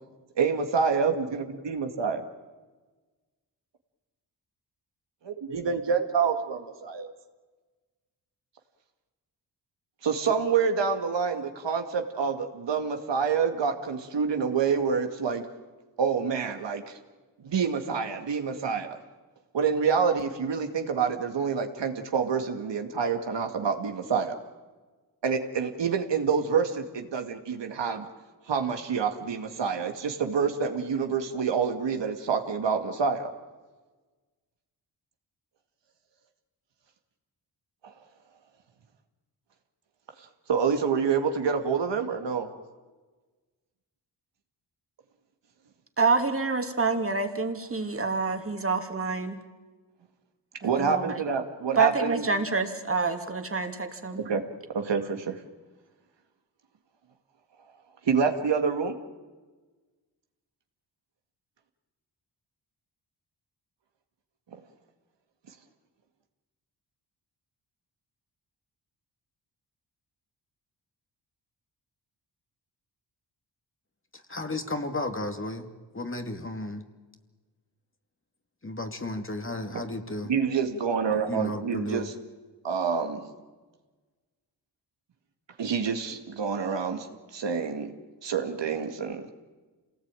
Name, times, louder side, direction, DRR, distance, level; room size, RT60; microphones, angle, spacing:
voice 1, 0.4-2.2 5.2-7.1 10.0-15.5 16.0-17.0 17.4-19.0 19.5-24.4 25.2-28.1 28.5-33.3 40.5-42.5 50.6-52.2 54.2-54.4 54.7-55.4 58.0-59.0 80.3-82.1 82.6-83.3 85.6-87.1 87.3-87.9 88.2-89.3, right 6 dB, 70° right, 6 dB, 2.3 m, -27 dB
voice 2, 46.0-49.4 50.6-51.2 51.8-54.2, right 4 dB, 30° right, 6 dB, 3.0 m, -27 dB
voice 3, 74.3-75.7 75.9-76.8 78.6-80.3 81.3-82.1, left 2 dB, 25° left, 6 dB, 2.4 m, -33 dB
27.0 x 18.5 x 9.1 m, 1.3 s
cardioid pair, 55°, 45 cm